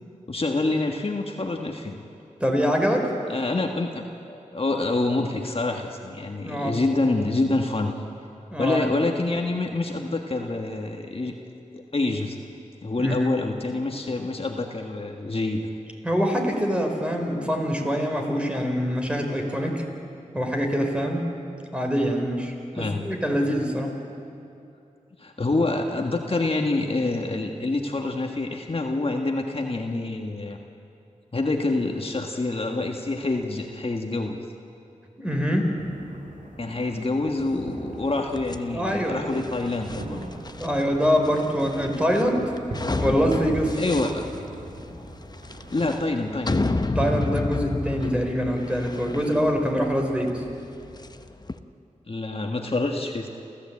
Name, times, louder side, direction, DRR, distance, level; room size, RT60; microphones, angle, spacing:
voice 1, 0.3-2.0 3.3-7.9 8.6-11.3 11.7-12.4 12.8-15.7 22.7-23.0 25.2-30.6 31.3-34.4 36.6-40.3 43.7-44.2 45.7-46.6 52.1-53.3, left 2 dB, 45° left, 3 dB, 1.7 m, -27 dB
voice 2, 2.4-3.1 6.4-6.8 8.5-8.9 13.0-13.3 16.0-19.8 20.3-21.3 21.7-23.9 35.2-35.7 38.7-39.3 40.6-42.5 43.0-43.8 46.9-50.4, equal, 10° right, 2 dB, 4.4 m, -24 dB
sound 1, 35.8-45.9, right 1 dB, 80° right, 3.0 m, -41 dB
sound 2, 38.3-51.6, left 2 dB, 30° left, 0.9 m, -31 dB
29.0 x 14.5 x 8.6 m, 2.7 s
wide cardioid pair, 55°, 13 cm